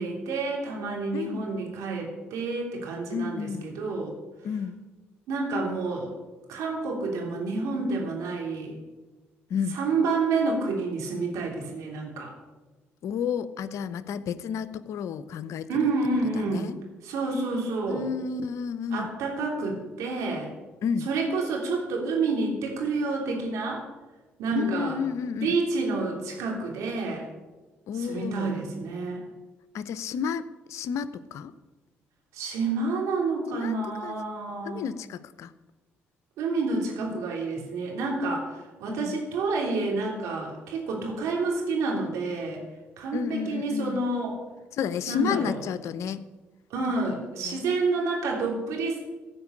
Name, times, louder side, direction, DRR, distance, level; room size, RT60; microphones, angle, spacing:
voice 1, 0.0-4.1 5.3-6.1 6.5-8.8 9.7-12.3 15.7-16.7 17.0-18.1 18.9-20.5 21.0-23.8 24.4-25.0 25.3-27.3 27.9-29.2 32.3-34.8 36.4-38.5 38.8-42.6 43.0-44.3 45.1-45.6 46.7-49.0, right 3 dB, 75° right, 0 dB, 3.3 m, -29 dB
voice 2, 1.1-1.5 3.1-3.6 4.4-4.8 9.5-9.8 13.0-15.7 16.4-16.8 17.9-19.1 20.8-21.1 24.5-25.6 27.9-28.5 29.7-31.5 33.5-33.7 34.0-34.1 34.6-35.5 38.9-39.2 43.1-44.0 44.7-46.2 47.4-47.6, left 7 dB, 70° left, 14 dB, 0.7 m, -31 dB
15.5 x 5.3 x 8.5 m, 1.2 s
supercardioid pair, 60°, 5 cm